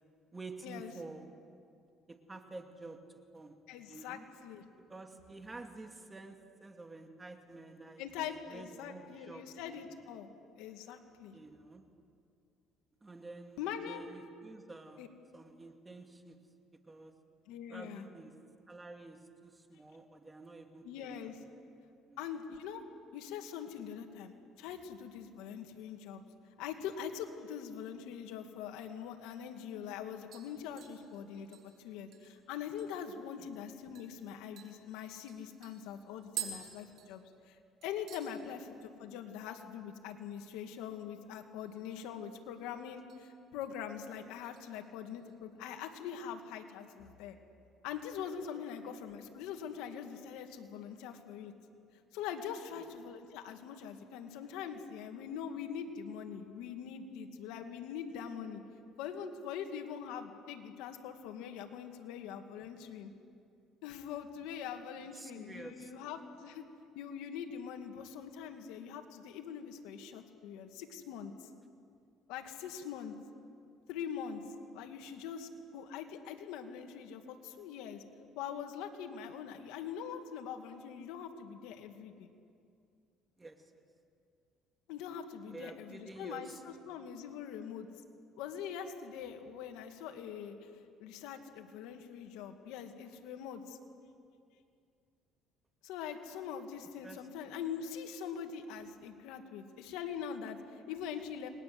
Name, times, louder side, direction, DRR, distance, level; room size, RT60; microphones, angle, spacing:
voice 1, 0.3-1.3 2.1-3.6 3.9-4.3 4.9-9.8 11.3-11.9 13.0-15.0 15.3-16.4 16.8-17.1 17.7-18.4 18.7-21.6 22.1-22.3 33.4-33.5 52.8-52.9 65.1-65.9 83.4-83.7 85.5-87.0 97.0-97.5, right 3 dB, 15° right, 5 dB, 2.4 m, -50 dB
voice 2, 3.7-4.7 8.0-10.3 10.6-11.3 13.6-14.0 15.0-15.1 17.5-18.0 20.8-21.4 22.2-22.8 23.1-24.3 24.6-26.2 26.6-37.6 37.8-47.4 47.8-51.5 52.1-58.6 59.0-63.1 63.8-66.6 66.9-71.5 72.3-73.1 73.9-74.4 74.7-78.0 78.4-82.3 84.9-87.9 88.4-90.7 91.0-93.8 95.8-101.5, left 8 dB, 90° left, 5 dB, 2.4 m, -43 dB
sound 1, 29.2-29.3 29.7-30.0 30.3-33.1 33.5-33.6 33.9-34.1 34.6-37.6 37.8-38.3 38.7-39.1 39.3-39.4 41.5-42.2 42.5-43.2 43.6-43.9 44.4-45.4 45.7-45.8, right 8 dB, 60° right, 6.0 m, -48 dB
30.0 x 21.5 x 7.9 m, 2.4 s
cardioid pair, 110°, 0 cm